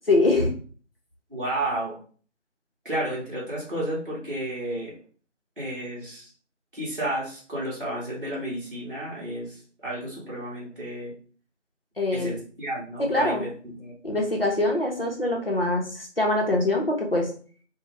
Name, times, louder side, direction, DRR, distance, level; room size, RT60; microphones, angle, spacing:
voice 1, 0.1-0.5 12.0-12.3 13.1-13.5 14.0-17.3, left 2 dB, 50° left, 0 dB, 0.7 m, -23 dB
voice 2, 1.3-2.0 2.8-4.9 5.6-6.3 6.7-11.1 12.1-13.9, right 1 dB, 45° right, -6 dB, 0.9 m, -32 dB
2.5 x 2.2 x 3.1 m, 0.42 s
figure-of-eight pair, 180°, 37 cm